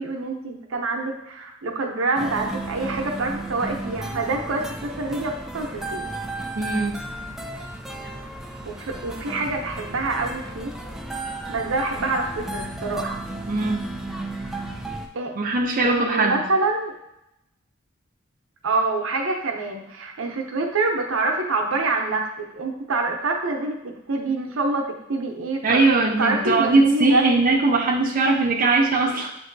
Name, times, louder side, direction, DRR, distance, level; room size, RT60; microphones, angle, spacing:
voice 1, 0.0-6.1 8.7-10.7 11.5-13.2 15.1-15.3 15.8-16.9 18.6-25.8 26.2-27.5, right 3 dB, 90° right, 1 dB, 0.7 m, -26 dB
sound 1, 2.2-15.1, right 2 dB, ahead, 0.4 m, -34 dB
voice 2, 6.6-7.0 13.5-13.9 15.4-16.4 25.6-29.3, right 3 dB, 45° right, -1 dB, 0.6 m, -20 dB
7.4 x 2.7 x 2.6 m, 0.83 s
head